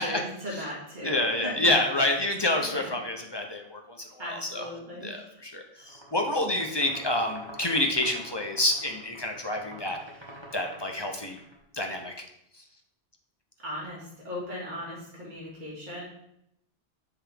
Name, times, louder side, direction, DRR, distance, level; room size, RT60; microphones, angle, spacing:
voice 1, 0.0-2.1 2.6-3.0 4.2-5.4 13.6-16.0, left 1 dB, 45° right, -5 dB, 2.1 m, -38 dB
voice 2, 1.0-4.0 4.5-4.6 5.0-10.0 10.5-11.4 11.7-12.1, left 1 dB, 30° left, 2 dB, 0.6 m, -28 dB
sound 1, 5.8-11.6, right 1 dB, 25° right, 1.4 m, -46 dB
7.9 x 4.5 x 3.4 m, 0.77 s
omnidirectional pair, 1.1 m